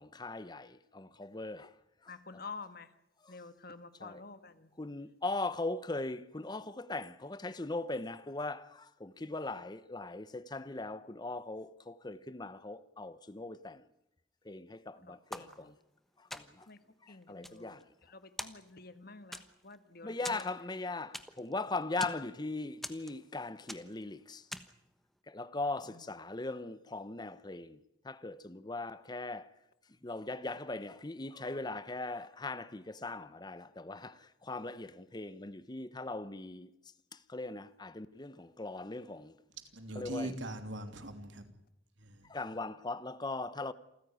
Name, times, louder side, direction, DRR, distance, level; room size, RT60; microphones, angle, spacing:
voice 1, 0.0-1.7 2.1-2.2 4.0-4.2 4.8-13.8 14.5-15.7 16.3-16.4 17.3-17.8 20.0-24.4 25.3-27.8 28.0-29.5 30.0-34.1 34.4-36.7 37.3-39.3 40.0-40.3 42.3-43.7, left 2 dB, 25° left, 0.9 m, -39 dB
voice 2, 2.1-2.9 3.3-4.5 15.4-15.5 16.7-16.8 17.1-17.7 18.4-20.4, left 4 dB, 55° left, 1.6 m, -48 dB
sound 1, 15.3-16.0 16.3-16.8 17.2-18.1 18.4-19.0 19.3-19.8 20.2-21.5 21.8-22.3 22.8-23.4 23.7-24.1 24.5-24.9, equal, ahead, 1.2 m, -44 dB
voice 3, 39.7-41.5 42.0-42.3, right 1 dB, 85° right, 3.0 m, -41 dB
27.5 x 15.0 x 9.5 m
head